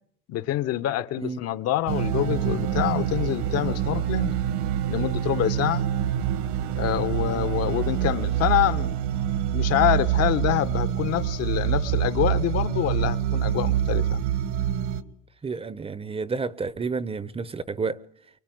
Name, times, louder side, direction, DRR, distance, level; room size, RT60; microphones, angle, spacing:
voice 1, 0.3-4.3 4.9-5.8 6.8-9.0 9.5-14.2, left 13 dB, 50° left, 1.4 m, -26 dB
sound 1, 1.9-15.0, right 10 dB, 65° right, 2.0 m, -26 dB
voice 2, 15.4-18.0, right 4 dB, 20° right, 1.0 m, -30 dB
25.0 x 23.5 x 9.5 m
supercardioid pair, 105°, 31 cm